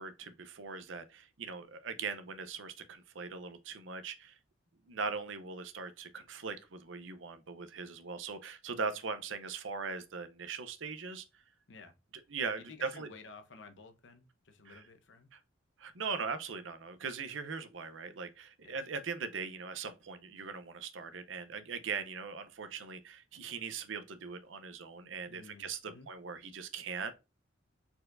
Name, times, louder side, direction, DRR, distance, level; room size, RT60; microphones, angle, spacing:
voice 1, 0.0-4.4 4.9-11.2 12.3-13.1 14.6-14.8 15.3-15.4 15.8-27.2, right 5 dB, 75° right, 0.6 m, -40 dB
voice 2, 12.6-15.3 18.6-18.8 25.3-26.1, left 4 dB, 65° left, 0.8 m, -53 dB
4.5 x 4.2 x 2.5 m
head